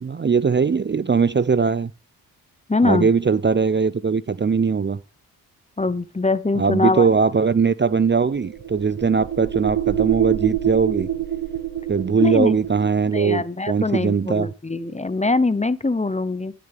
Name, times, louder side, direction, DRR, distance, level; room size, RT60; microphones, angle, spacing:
voice 1, 0.0-1.9 2.8-5.0 6.6-11.1 11.9-14.5, right 5 dB, 25° right, 0.7 m, -20 dB
voice 2, 2.7-3.1 5.8-7.1 12.2-12.6 13.1-16.5, left 3 dB, 15° left, 0.9 m, -22 dB
sound 1, 8.3-12.9, right 11 dB, 65° right, 1.6 m, -26 dB
12.0 x 6.9 x 3.6 m
supercardioid pair, 40°, 42 cm